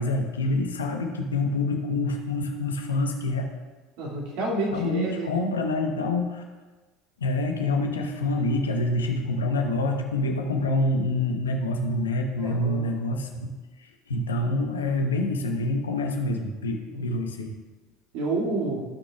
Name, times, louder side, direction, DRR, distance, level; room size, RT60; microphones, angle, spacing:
voice 1, 0.0-3.5 4.7-6.4 7.2-13.5 13.8-17.5, left 2 dB, 90° left, 3 dB, 1.1 m, -26 dB
voice 2, 4.0-5.3 12.4-12.9 16.9-17.0 18.1-18.8, right 2 dB, 65° right, -3 dB, 2.5 m, -29 dB
16.0 x 6.2 x 2.4 m, 1.3 s
hypercardioid pair, 75°, 0 cm